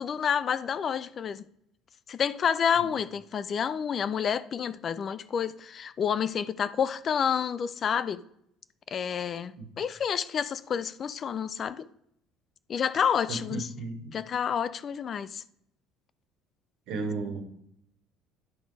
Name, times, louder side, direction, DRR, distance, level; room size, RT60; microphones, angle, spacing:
voice 1, 0.0-1.4 2.1-8.2 8.9-11.9 12.7-13.7 14.1-15.4, left 7 dB, 45° left, 0.4 m, -29 dB
voice 2, 13.3-14.1 16.9-17.4, right 3 dB, 70° right, 1.5 m, -34 dB
10.5 x 3.9 x 4.9 m
hypercardioid pair, 70°, 0 cm